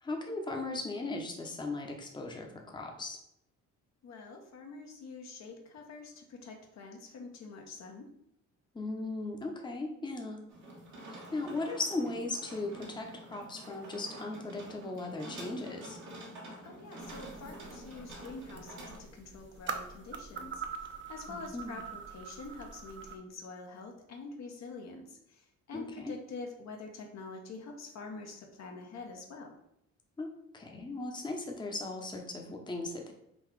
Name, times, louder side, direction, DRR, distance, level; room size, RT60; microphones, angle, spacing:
voice 1, 0.0-3.2 8.7-10.4 11.1-16.0 21.3-21.8 25.7-26.1 30.2-33.1, left 2 dB, 15° left, 2 dB, 0.7 m, -38 dB
voice 2, 4.0-8.1 16.6-29.5, left 3 dB, 60° left, 3 dB, 0.8 m, -46 dB
sound 1, 10.5-19.0, right 1 dB, 70° right, 1.3 m, -48 dB
sound 2, 17.0-23.2, right 5 dB, 40° right, 0.6 m, -44 dB
3.9 x 2.4 x 4.6 m, 0.77 s
cardioid pair, 90°, 30 cm